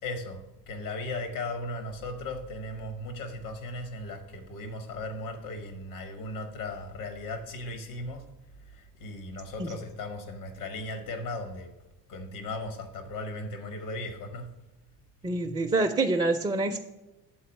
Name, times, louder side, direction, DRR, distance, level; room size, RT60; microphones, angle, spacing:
voice 1, 0.0-8.3 8.7-11.7 12.1-14.6, left 2 dB, 70° left, 7 dB, 1.4 m, -37 dB
voice 2, 15.2-16.8, right 2 dB, 15° right, 4 dB, 0.5 m, -26 dB
7.8 x 4.1 x 6.4 m, 1.0 s
figure-of-eight pair, 55°, 47 cm